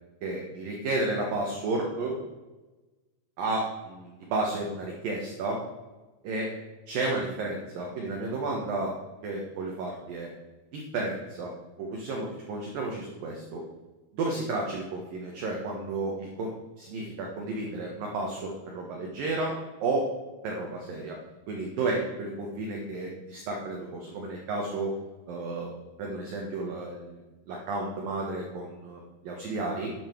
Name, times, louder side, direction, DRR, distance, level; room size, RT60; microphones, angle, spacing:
voice 1, 0.2-2.2 3.4-5.6 6.2-6.5 6.9-9.0 9.2-10.3 10.7-11.5 11.8-13.6 14.1-20.1 20.4-21.2 21.5-25.0 25.3-27.2 27.5-29.9, right 2 dB, 65° right, 0 dB, 2.4 m, -32 dB
11.0 x 9.3 x 4.6 m, 1.2 s
omnidirectional pair, 5.8 m